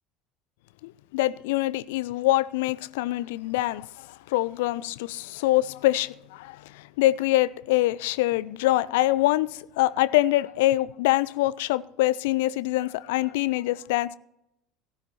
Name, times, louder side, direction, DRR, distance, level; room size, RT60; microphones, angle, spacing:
voice 1, 0.8-14.2, left 16 dB, 65° left, 0.4 m, -25 dB
17.0 x 9.0 x 4.3 m
figure-of-eight pair, 65°, 0 cm